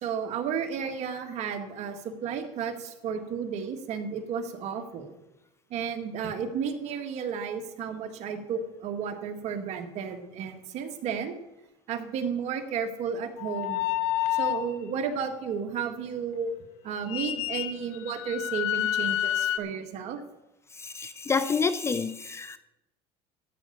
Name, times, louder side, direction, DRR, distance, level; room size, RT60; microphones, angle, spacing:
voice 1, 0.0-5.2 5.7-11.4 11.9-13.9 14.3-16.5 16.8-20.2, right 6 dB, 55° right, 5 dB, 1.7 m, -33 dB
sound 1, 13.4-14.7 17.1-19.6, left 12 dB, 85° left, 0.9 m, -29 dB
voice 2, 20.7-22.6, left 5 dB, 20° left, 13 dB, 0.5 m, -28 dB
13.5 x 5.7 x 8.6 m, 0.94 s
cardioid pair, 130°, 14 cm